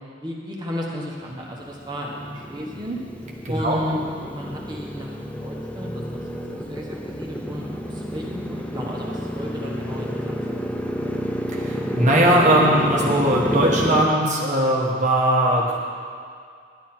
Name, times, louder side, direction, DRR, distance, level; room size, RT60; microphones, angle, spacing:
voice 1, 0.2-3.0 3.5-5.1 5.4-6.2 6.5-11.0, equal, 20° right, -3 dB, 1.4 m, -34 dB
Motorcycle, 1.4-14.0, equal, 5° left, 0.6 m, -29 dB
voice 2, 3.4-3.8 11.5-15.8, right 1 dB, 40° right, -2 dB, 1.3 m, -19 dB
11.5 x 10.5 x 4.5 m, 2.2 s
head